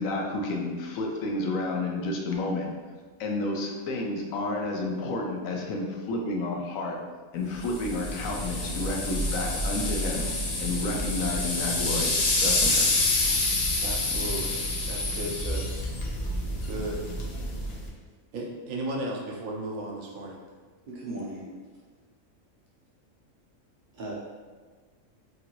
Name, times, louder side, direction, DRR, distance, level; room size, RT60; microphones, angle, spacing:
voice 1, 0.0-2.7 3.2-7.0 7.3-10.2 10.6-12.9, left 2 dB, 85° left, 0 dB, 1.0 m, -30 dB
sound 1, 7.6-17.9, left 2 dB, 65° left, 0.4 m, -28 dB
voice 2, 13.8-14.6 14.9-15.7 16.7-17.2 18.3-20.4, right 1 dB, 80° right, -1 dB, 1.0 m, -35 dB
voice 3, 20.9-21.5 23.9-24.1, right 2 dB, 60° right, -5 dB, 0.5 m, -36 dB
2.9 x 2.7 x 2.8 m, 1.4 s
omnidirectional pair, 1.4 m